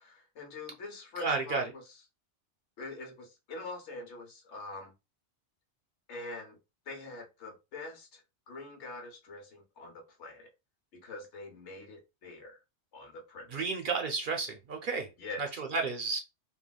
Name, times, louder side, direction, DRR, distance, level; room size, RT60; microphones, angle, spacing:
voice 1, 0.0-1.8 2.8-4.9 6.1-6.6 6.9-8.2 8.5-10.5 10.9-12.6 12.9-13.6 15.2-15.4, left 2 dB, 80° left, 2 dB, 1.2 m, -44 dB
voice 2, 1.2-1.6 13.5-15.1 15.4-16.2, right 4 dB, 55° right, 4 dB, 0.6 m, -32 dB
3.2 x 2.3 x 2.2 m, 0.25 s
omnidirectional pair, 1.2 m